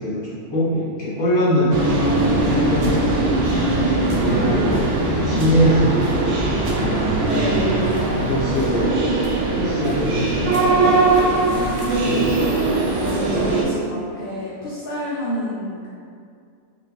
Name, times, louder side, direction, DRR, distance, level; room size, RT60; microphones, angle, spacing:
voice 1, 0.0-3.2 3.8-7.0 8.1-10.9 11.4-12.2, equal, 20° left, -11 dB, 1.2 m, -23 dB
sound 1, 1.7-13.6, right 2 dB, 65° right, 0.8 m, -20 dB
voice 2, 3.3-4.4 7.2-7.7 11.2-12.2 13.0-15.9, equal, 75° left, -7 dB, 0.5 m, -30 dB
3.7 x 2.5 x 3.0 m, 2.3 s
omnidirectional pair, 1.6 m